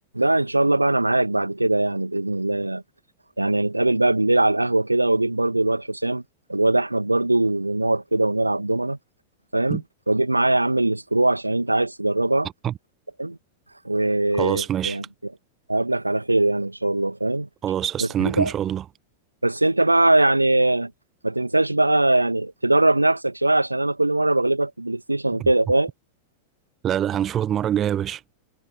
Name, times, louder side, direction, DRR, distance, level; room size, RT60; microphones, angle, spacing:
voice 1, 0.1-2.8 3.4-6.2 6.5-9.0 9.5-9.8 10.1-12.5 13.2-13.4 13.8-15.0 15.7-17.5 18.0-18.5 19.4-20.9 21.2-25.9, right 2 dB, 85° right, 1.8 m, -21 dB
voice 2, 14.4-15.0 17.6-18.8 26.8-28.2, right 10 dB, 30° right, 1.2 m, -24 dB
figure-of-eight pair, 90°, 0 cm